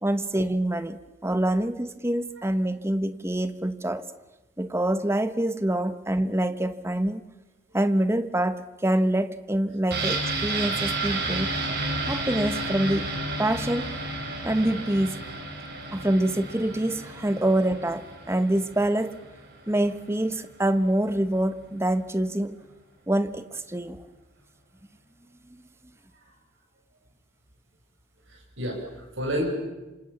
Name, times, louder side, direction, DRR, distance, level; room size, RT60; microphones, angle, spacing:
voice 1, 0.0-4.0 4.6-7.2 7.7-11.6 12.1-13.1 13.4-14.0 14.4-15.2 15.9-19.2 19.7-22.6 23.1-24.0, right 1 dB, 15° right, 11 dB, 1.1 m, -26 dB
sound 1, 9.9-19.5 19.8-19.9, right 2 dB, 55° right, 6.2 m, -32 dB
voice 2, 28.3-29.5, equal, 85° right, 1 dB, 7.5 m, -31 dB
27.0 x 26.0 x 7.2 m, 1.1 s
head